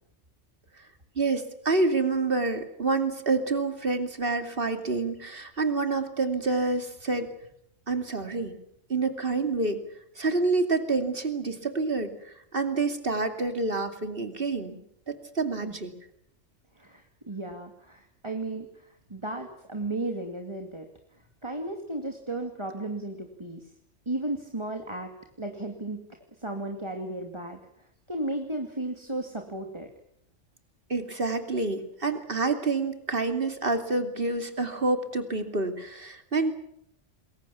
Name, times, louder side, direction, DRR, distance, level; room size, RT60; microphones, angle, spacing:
voice 1, 1.2-7.3 7.9-8.6 8.9-9.8 10.2-14.8 15.1-15.9 30.9-36.5, right 3 dB, 45° right, 7 dB, 2.8 m, -28 dB
voice 2, 16.8-20.9 21.4-23.7 24.1-25.1 25.4-26.0 26.4-27.6 28.1-29.9, right 2 dB, 20° right, 3 dB, 2.4 m, -34 dB
27.5 x 22.0 x 7.2 m, 0.75 s
omnidirectional pair, 1.3 m